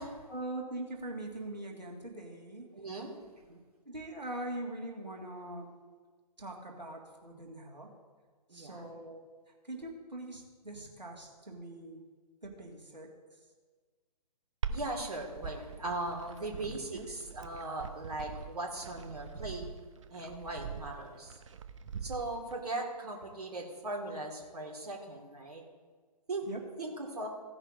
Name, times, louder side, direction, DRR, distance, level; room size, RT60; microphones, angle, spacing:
voice 1, 0.3-2.7 3.5-3.6 3.9-5.7 6.4-7.9 8.5-12.1 12.4-13.1 16.5-17.1 26.5-26.6, right 1 dB, 85° right, 0 dB, 2.0 m, -42 dB
voice 2, 2.7-3.2 8.5-8.9 14.7-19.7 20.1-21.4 22.0-25.6 26.3-26.5 26.8-27.3, right 2 dB, 65° right, 0 dB, 1.9 m, -39 dB
Glass, 14.6-22.6, right 6 dB, 45° right, 0.7 m, -43 dB
16.0 x 10.5 x 2.6 m, 1.4 s
figure-of-eight pair, 130°, 21 cm